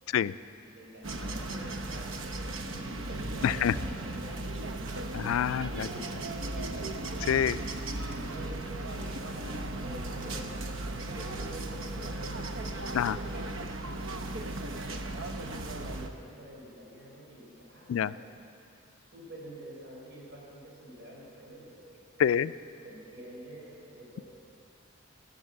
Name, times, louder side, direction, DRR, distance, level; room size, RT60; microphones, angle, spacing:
voice 1, 0.7-6.7 7.8-12.2 12.5-13.6 15.2-18.2 18.9-22.0 22.8-24.2, right 1 dB, 60° right, -4 dB, 4.4 m, -48 dB
sound 1, 1.0-16.1, right 2 dB, 75° right, 0.8 m, -36 dB
sound 2, 1.9-2.3 3.4-3.8 4.9-5.3 6.1-6.5 7.1-7.4 8.1-8.5 9.0-9.4 10.2-10.8, right 2 dB, 40° right, 0.8 m, -49 dB
voice 2, 3.4-3.7 5.1-5.9 7.2-7.6 12.9-13.2 17.9-18.1 22.2-22.5, left 9 dB, 80° left, 17 dB, 0.3 m, -26 dB
19.0 x 7.2 x 7.5 m, 2.7 s
head